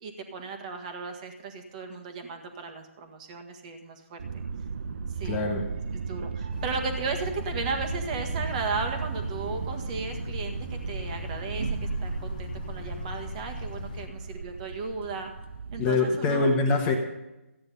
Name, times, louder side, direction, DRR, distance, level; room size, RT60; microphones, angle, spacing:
voice 1, 0.0-4.4 5.2-5.5 6.1-15.3 15.7-16.5, right 4 dB, 30° right, 5 dB, 1.7 m, -35 dB
sound 1, 4.2-15.9, right 5 dB, 50° right, 0.8 m, -35 dB
voice 2, 5.2-5.6 15.8-16.9, left 3 dB, 20° left, 3 dB, 1.3 m, -24 dB
sound 2, 6.5-14.1, left 7 dB, 35° left, 0.9 m, -40 dB
14.0 x 9.6 x 5.5 m, 0.97 s
figure-of-eight pair, 150°, 8 cm